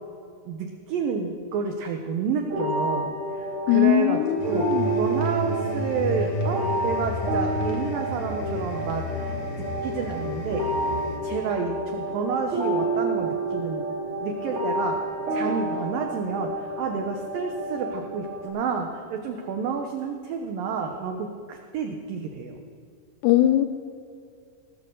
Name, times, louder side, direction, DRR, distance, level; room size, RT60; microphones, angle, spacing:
voice 1, 0.5-3.1 3.7-9.3 9.8-10.7 11.2-13.8 14.2-15.0 15.3-22.6, right 5 dB, 80° right, 4 dB, 2.0 m, -30 dB
sound 1, 2.5-18.5, right 1 dB, 35° right, 2.6 m, -29 dB
voice 2, 3.7-4.9 23.2-23.7, left 12 dB, 80° left, 9 dB, 2.5 m, -20 dB
sound 2, 4.4-11.2, left 1 dB, 50° left, 2.2 m, -32 dB
19.5 x 8.5 x 6.6 m, 2.4 s
omnidirectional pair, 5.2 m